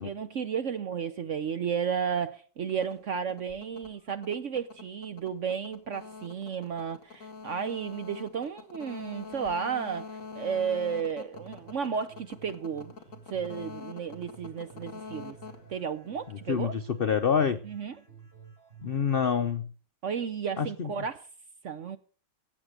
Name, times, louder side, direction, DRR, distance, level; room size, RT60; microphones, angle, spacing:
voice 1, 0.0-10.0 10.3-12.9 13.3-15.4 15.7-16.7 17.6-17.9 20.0-21.2 21.6-22.0, right 7 dB, 60° right, 0.8 m, -33 dB
sound 1, 2.7-16.5, left 4 dB, 45° left, 2.0 m, -45 dB
sound 2, 11.3-19.3, right 6 dB, 30° right, 6.7 m, -52 dB
voice 2, 16.5-17.6 18.8-19.7 20.6-20.9, left 7 dB, 80° left, 0.5 m, -27 dB
15.0 x 8.2 x 6.5 m
omnidirectional pair, 2.0 m